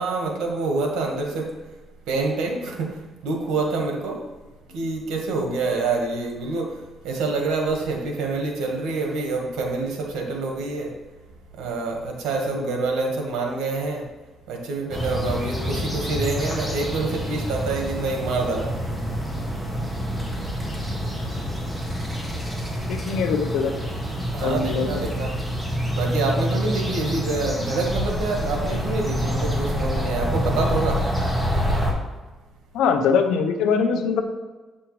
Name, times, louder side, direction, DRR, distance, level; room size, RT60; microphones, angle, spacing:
voice 1, 0.0-1.5 2.1-3.0 3.2-4.2 4.7-6.7 7.0-11.0 11.6-14.1 14.5-18.8 24.3-25.4 25.9-31.0, right 3 dB, 90° right, 2 dB, 1.4 m, -26 dB
sound 1, 14.9-31.9, equal, 10° right, 1.8 m, -27 dB
voice 2, 22.9-23.7 24.4-24.9 32.7-34.2, left 6 dB, 90° left, 6 dB, 0.7 m, -22 dB
7.9 x 6.3 x 3.1 m, 1.2 s
cardioid pair, 90°, 0 cm